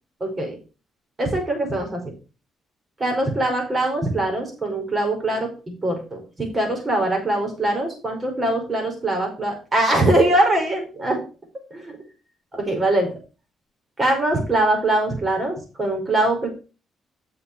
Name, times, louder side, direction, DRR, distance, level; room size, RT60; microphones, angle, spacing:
voice 1, 0.2-0.6 1.2-2.1 3.0-5.5 5.8-11.2 11.7-11.9 12.5-13.1 14.0-16.5, right 1 dB, 30° right, 3 dB, 5.0 m, -22 dB
8.7 x 6.8 x 5.0 m, 0.33 s
cardioid pair, 90°, 0 cm